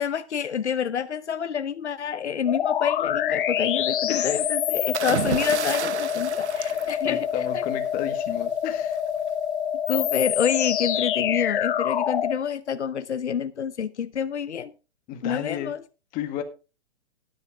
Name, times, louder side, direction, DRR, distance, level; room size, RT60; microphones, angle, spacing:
voice 1, 0.0-7.3 7.5-7.6 9.9-14.7 15.2-15.8, left 8 dB, 90° left, 0.9 m, -28 dB
sound 1, 2.5-12.4, left 9 dB, 50° left, 1.2 m, -26 dB
voice 2, 4.1-4.5 6.6-9.0 15.1-15.7 16.1-16.4, left 11 dB, 25° left, 1.8 m, -33 dB
sound 2, 4.9-7.7 8.9-9.2, right 8 dB, 80° right, 0.9 m, -31 dB
13.0 x 10.5 x 3.6 m
hypercardioid pair, 140°, 33 cm